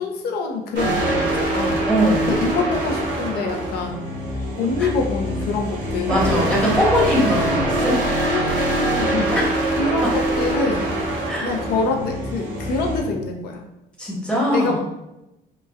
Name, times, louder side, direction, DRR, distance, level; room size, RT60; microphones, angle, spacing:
voice 1, 0.0-1.8 2.3-4.0 4.6-6.2 8.3-9.4 9.8-10.9 11.4-13.6 14.5-14.8, left 3 dB, 70° left, 2 dB, 0.5 m, -25 dB
sound 1, 0.7-13.0, right 1 dB, 75° right, 0.8 m, -24 dB
voice 2, 1.9-2.4 4.8-4.9 6.1-8.0 9.3-9.5 10.0-10.1 11.3-11.5 14.0-14.8, equal, 5° left, -4 dB, 0.8 m, -21 dB
3.0 x 2.1 x 2.2 m, 0.92 s
cardioid pair, 110°, 17 cm